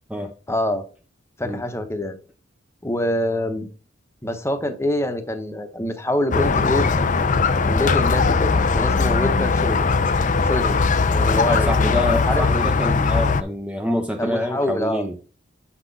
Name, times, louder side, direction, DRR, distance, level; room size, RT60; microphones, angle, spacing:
voice 1, 0.5-0.8 1.4-2.2 2.8-3.7 4.2-6.9 7.5-9.9 10.4-10.8 11.1-11.7 12.2-12.5 14.2-15.0, left 1 dB, 15° left, 0.9 m, -25 dB
Squeak, 6.3-13.4, left 4 dB, 40° left, 0.5 m, -19 dB
voice 2, 11.4-15.4, left 1 dB, 5° right, 0.5 m, -26 dB
7.1 x 5.9 x 4.0 m
head